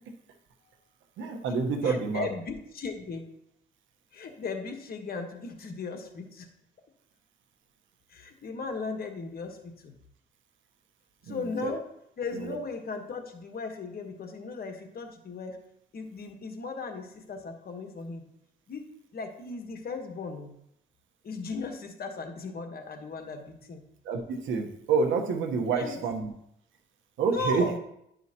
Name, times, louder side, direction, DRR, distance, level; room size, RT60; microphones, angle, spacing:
voice 1, 1.2-2.3 11.3-11.7 12.3-12.6 24.0-26.3 27.2-27.7, right 5 dB, 80° right, 4 dB, 1.2 m, -28 dB
voice 2, 1.8-3.3 4.1-6.5 8.1-9.9 11.2-11.8 12.2-15.6 15.9-18.2 18.7-20.5 21.2-23.8 25.7-26.0 27.3-27.8, left 4 dB, 50° left, 5 dB, 1.3 m, -37 dB
10.5 x 5.6 x 2.9 m, 0.76 s
cardioid pair, 90°, 20 cm